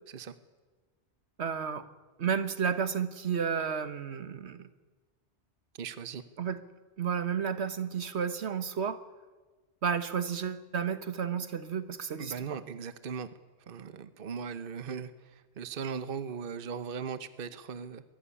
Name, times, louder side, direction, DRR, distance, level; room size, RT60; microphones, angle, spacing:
voice 1, 1.4-1.9 2.2-4.7 6.4-6.6 7.0-9.0 9.8-12.6, right 7 dB, 70° right, 11 dB, 1.4 m, -32 dB
voice 2, 5.7-6.2 12.2-13.3 13.7-18.0, right 6 dB, 55° right, 12 dB, 1.1 m, -38 dB
22.0 x 15.5 x 9.8 m, 1.3 s
omnidirectional pair, 1.2 m